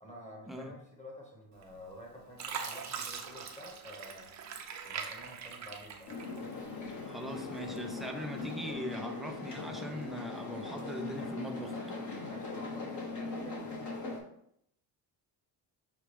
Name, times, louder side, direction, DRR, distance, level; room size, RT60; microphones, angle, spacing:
voice 1, 0.0-4.3 4.8-6.1 12.0-13.9, left 1 dB, 15° left, -1 dB, 1.1 m, -50 dB
Fill (with liquid), 1.6-2.0 2.4-6.8 7.2-8.0 8.6-8.7, right 6 dB, 40° right, 0.6 m, -42 dB
sound 1, 6.1-14.2, left 3 dB, 40° left, 1.1 m, -40 dB
voice 2, 7.0-12.0, equal, ahead, 2 dB, 0.3 m, -41 dB
5.8 x 2.3 x 3.3 m, 0.74 s
cardioid pair, 120°, 43 cm